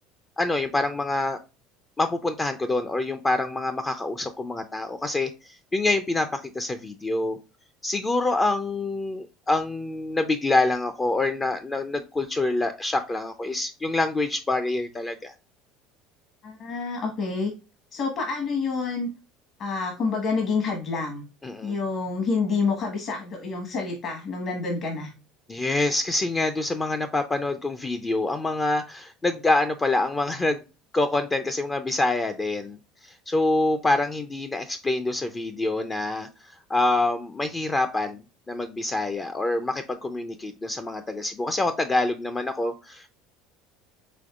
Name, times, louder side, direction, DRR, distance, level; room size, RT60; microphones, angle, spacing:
voice 1, 0.4-1.4 2.0-7.4 7.8-15.3 21.4-21.8 25.5-30.6 30.9-32.8 33.0-43.1, left 2 dB, 15° left, 8 dB, 0.4 m, -26 dB
voice 2, 16.4-17.5 17.9-19.1 19.6-21.2 21.6-25.1, left 4 dB, 50° left, 2 dB, 1.2 m, -28 dB
5.1 x 3.4 x 2.3 m, 0.29 s
cardioid pair, 135°, 0 cm